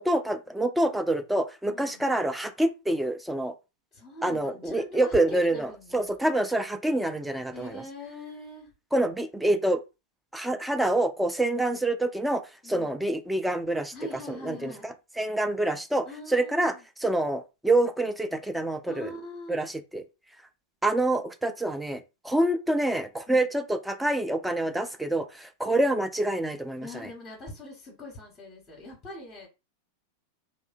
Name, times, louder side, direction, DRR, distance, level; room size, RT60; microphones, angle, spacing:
voice 1, 0.0-3.5 4.2-7.8 8.9-9.8 10.3-13.9 14.3-14.7 15.2-16.7 17.0-19.1 19.5-20.0 20.8-27.1, right 1 dB, 5° right, 0.3 m, -26 dB
voice 2, 1.6-2.1 3.9-6.1 7.5-8.7 11.4-11.9 12.6-13.0 13.9-14.9 16.0-16.8 18.9-19.6 23.3-23.5 26.8-29.5, left 1 dB, 15° left, 1.1 m, -43 dB
2.6 x 2.0 x 2.5 m
figure-of-eight pair, 90°, 0 cm